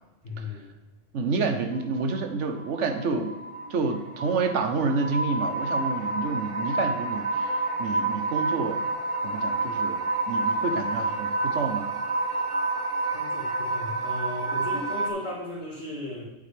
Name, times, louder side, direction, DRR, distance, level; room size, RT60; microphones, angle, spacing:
voice 1, 0.2-0.7 13.1-16.2, left 2 dB, 80° left, -7 dB, 2.1 m, -36 dB
voice 2, 1.1-3.4 3.7-8.9 9.2-11.9, right 4 dB, 90° right, 7 dB, 1.2 m, -29 dB
sound 1, 1.7-15.1, right 2 dB, 40° right, 0.5 m, -29 dB
8.6 x 7.7 x 3.4 m, 1.1 s
omnidirectional pair, 1.2 m